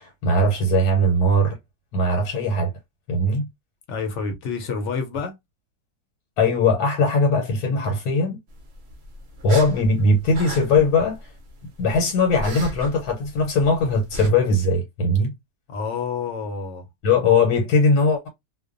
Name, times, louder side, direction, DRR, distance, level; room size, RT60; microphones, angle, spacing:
voice 1, 0.0-1.5 1.9-2.7 3.1-3.5 6.4-8.4 9.4-11.3 11.8-15.3 17.0-18.3, left 2 dB, 80° left, 1.2 m, -20 dB
voice 2, 3.9-5.3 15.7-16.9, left 5 dB, 65° left, 0.8 m, -28 dB
fear breath, 8.5-14.3, right 1 dB, 60° right, 0.7 m, -38 dB
2.4 x 2.2 x 2.4 m
omnidirectional pair, 1.6 m